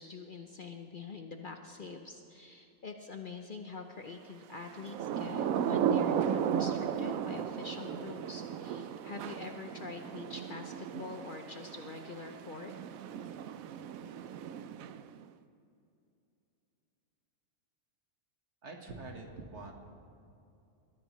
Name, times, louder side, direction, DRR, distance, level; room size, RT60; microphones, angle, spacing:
voice 1, 0.0-12.7, left 4 dB, 45° left, 4 dB, 0.8 m, -45 dB
Thunder / Rain, 4.7-15.2, right 8 dB, 90° right, 1.0 m, -35 dB
voice 2, 18.6-19.7, right 3 dB, 60° right, 2 dB, 1.8 m, -45 dB
21.5 x 13.5 x 3.1 m, 2.6 s
omnidirectional pair, 1.4 m